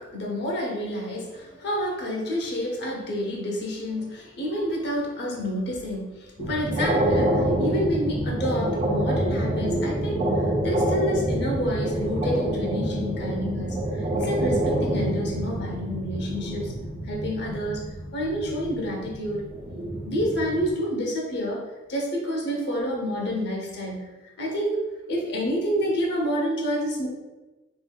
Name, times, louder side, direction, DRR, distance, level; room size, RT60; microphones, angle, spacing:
voice 1, 0.0-16.7 17.0-17.8 18.1-19.4 20.0-21.6 21.9-24.1 24.4-24.8 25.1-27.1, equal, 55° left, -1 dB, 0.8 m, -28 dB
sound 1, 6.4-20.7, right 1 dB, 30° right, 0.5 m, -27 dB
3.7 x 2.6 x 2.2 m, 1.1 s
head